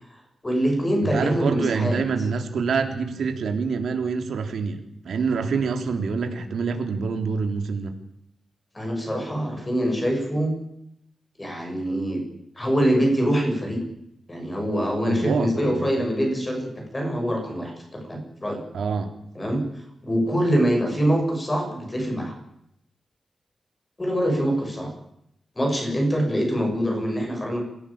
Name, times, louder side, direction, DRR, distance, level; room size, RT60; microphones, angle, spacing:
voice 1, 0.4-2.0 8.7-10.5 11.4-12.2 12.6-13.8 14.3-18.6 19.4-19.6 20.0-22.3 24.0-24.9 25.6-27.6, equal, 15° left, 3 dB, 7.0 m, -24 dB
voice 2, 1.0-8.0 15.0-16.0 18.7-19.1, right 5 dB, 85° right, 5 dB, 3.3 m, -26 dB
24.5 x 17.0 x 8.8 m, 0.78 s
wide cardioid pair, 175°, 0 cm